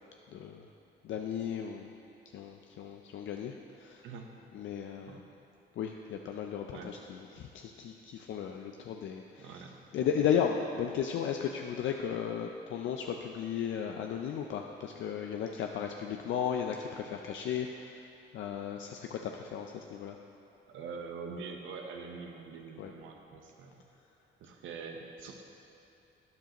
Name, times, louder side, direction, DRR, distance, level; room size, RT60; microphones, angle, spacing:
voice 1, 0.3-0.6 1.0-1.9 2.3-4.1 4.5-5.2 5.8-9.6 9.9-18.0 18.3-20.2 22.8-22.9, left 8 dB, 75° left, 3 dB, 0.5 m, -35 dB
voice 2, 4.0-4.4 5.1-5.2 6.7-6.9 9.4-9.8 20.7-23.8 24.4-25.4, right 5 dB, 80° right, 3 dB, 1.0 m, -44 dB
12.0 x 9.2 x 3.0 m, 2.8 s
cardioid pair, 90°, 20 cm